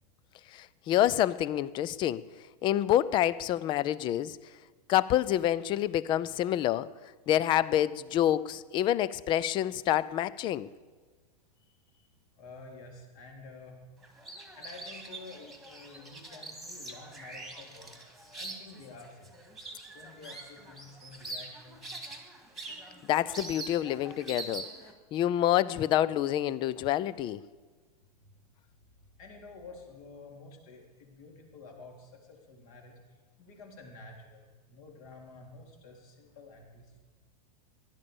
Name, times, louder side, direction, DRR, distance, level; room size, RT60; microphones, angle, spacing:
voice 1, 0.5-2.2 2.6-4.4 4.9-6.9 7.3-10.7 23.1-24.7 25.1-27.4, left 12 dB, 25° left, 0.4 m, -27 dB
voice 2, 11.6-12.1 12.4-13.8 14.5-18.0 18.4-21.9 28.2-28.3 29.2-32.9 33.4-36.9, left 3 dB, 55° left, 3.7 m, -50 dB
sound 1, 14.0-24.9, right 2 dB, ahead, 1.9 m, -44 dB
15.0 x 11.0 x 7.0 m
supercardioid pair, 145°, 21 cm